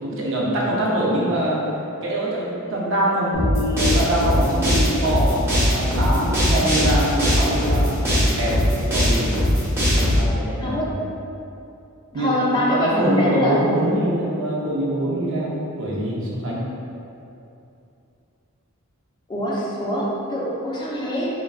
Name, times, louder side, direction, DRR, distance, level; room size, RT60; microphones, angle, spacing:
voice 1, 0.0-1.6 2.0-9.5 9.9-10.9 12.1-12.3 12.7-16.6, right 1 dB, 60° right, -4 dB, 0.6 m, -24 dB
sound 1, 3.3-10.2, equal, 10° right, 0.7 m, -20 dB
voice 2, 10.6-11.0 12.2-13.9 19.3-21.3, equal, 20° left, -6 dB, 0.4 m, -23 dB
3.8 x 2.2 x 2.3 m, 2.7 s
head